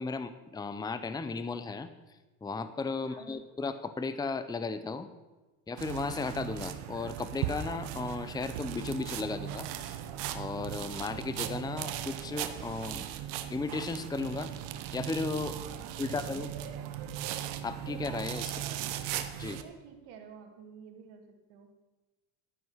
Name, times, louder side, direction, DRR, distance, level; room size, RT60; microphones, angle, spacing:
voice 1, 0.0-1.9 2.4-5.1 5.7-10.0 10.3-13.1 13.5-14.5 14.9-15.6 16.0-16.5 17.6-18.5 19.4-19.6, left 4 dB, 10° left, 12 dB, 0.6 m, -35 dB
voice 2, 3.0-3.4 15.7-16.3 18.4-19.0 19.4-21.7, right 6 dB, 70° right, 5 dB, 2.2 m, -51 dB
sound 1, 5.8-19.6, right 11 dB, 90° right, 1.0 m, -38 dB
11.5 x 9.1 x 5.6 m, 1.2 s
supercardioid pair, 100°, 47 cm